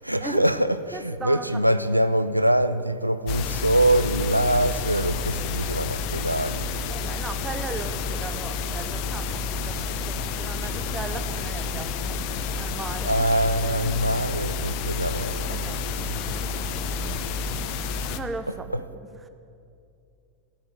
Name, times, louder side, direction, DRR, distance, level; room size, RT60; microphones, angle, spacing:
voice 1, 0.0-6.6 13.0-15.8 16.1-16.2, right 1 dB, 90° right, 0.4 m, -24 dB
voice 2, 0.9-1.6 6.9-12.3 12.6-13.3 15.5-17.5 18.1-19.3, right 4 dB, 15° right, 1.0 m, -38 dB
sound 1, 3.3-18.2, left 4 dB, 45° left, 0.8 m, -30 dB
14.5 x 8.6 x 9.7 m
figure-of-eight pair, 90°, 0 cm